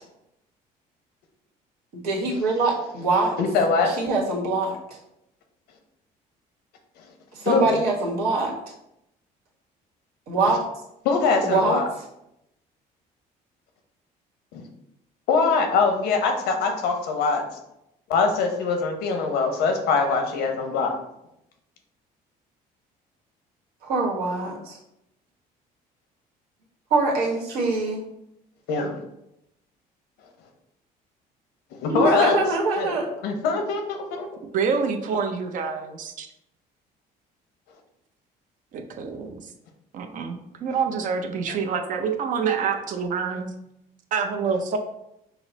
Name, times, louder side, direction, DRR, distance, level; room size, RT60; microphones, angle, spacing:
voice 1, 2.0-3.4 3.8-5.0 7.3-8.5 10.3-10.6 11.4-11.8 23.8-24.8 26.9-28.0 31.9-33.1, right 3 dB, 80° right, -3 dB, 1.4 m, -23 dB
voice 2, 3.4-3.9 7.4-7.8 11.0-11.9 14.5-14.6 15.3-17.4 18.1-20.9 28.7-28.9 31.8-32.4 32.8-33.0 33.2-34.3, left 4 dB, 85° left, 4 dB, 0.8 m, -22 dB
voice 3, 34.5-36.3 38.7-39.5 39.9-43.5 44.1-44.8, right 6 dB, 55° right, 6 dB, 0.6 m, -27 dB
5.6 x 2.0 x 4.0 m, 0.83 s
cardioid pair, 130°, 16 cm